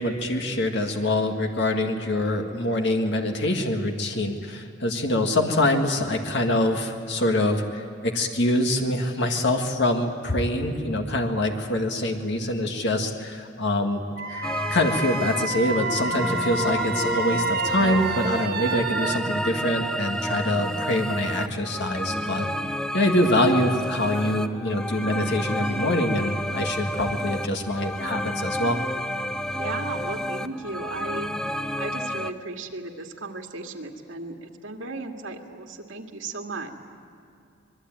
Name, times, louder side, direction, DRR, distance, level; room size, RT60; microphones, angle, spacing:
voice 1, 0.0-14.0 14.3-22.5 22.9-28.8, left 1 dB, 65° left, 3 dB, 1.9 m, -25 dB
Wind instrument woodwind instrument, 14.2-19.2, right 3 dB, 55° right, 1.6 m, -29 dB
sound 1, 14.4-32.3, equal, 5° left, 0.7 m, -30 dB
sound 2, 23.2-27.0, left 2 dB, 40° left, 4.1 m, -47 dB
voice 2, 29.5-31.3 31.8-36.7, right 3 dB, 85° right, 3 dB, 2.2 m, -35 dB
25.0 x 22.0 x 9.1 m, 2.4 s
head